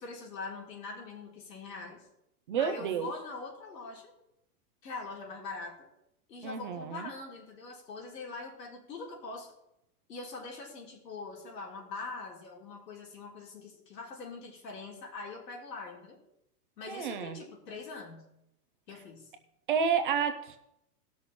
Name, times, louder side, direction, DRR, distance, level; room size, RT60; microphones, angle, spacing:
voice 1, 0.0-2.1 2.6-4.1 4.8-5.9 6.3-9.5 10.1-16.2 16.8-18.3 18.9-19.3, left 3 dB, 85° left, -1 dB, 3.7 m, -43 dB
voice 2, 2.5-3.1 6.4-7.1 16.9-17.4 19.7-20.6, right 7 dB, 35° right, 8 dB, 0.6 m, -30 dB
18.0 x 6.3 x 4.2 m, 0.81 s
supercardioid pair, 170°, 47 cm